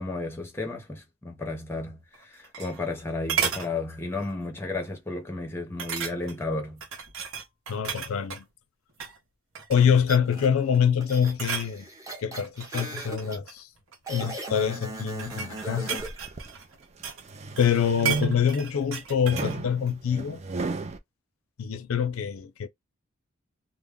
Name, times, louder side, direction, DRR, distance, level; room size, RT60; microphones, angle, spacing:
voice 1, 0.0-6.8, left 2 dB, 10° left, 0.7 m, -33 dB
sound 1, 2.1-3.0 3.3-3.7 4.2-4.4 4.8-4.9 5.8-6.4 6.8-8.4 8.9-9.2 9.5-10.1 10.6-10.9 11.1-11.7 12.4-14.1 14.9-17.3 17.6-19.6 19.9-20.0, right 8 dB, 70° right, 0.9 m, -33 dB
voice 2, 7.7-8.5 9.7-11.9 12.2-13.7 14.1-16.0 17.6-20.4 21.6-22.7, left 7 dB, 80° left, 0.4 m, -25 dB
sound 2, 10.1-10.5 11.0-13.4 14.1-16.3, right 2 dB, 15° right, 0.9 m, -38 dB
sound 3, 16.0-16.5 17.0-18.7 19.2-21.0, right 3 dB, 30° right, 0.4 m, -34 dB
2.2 x 2.0 x 3.5 m
head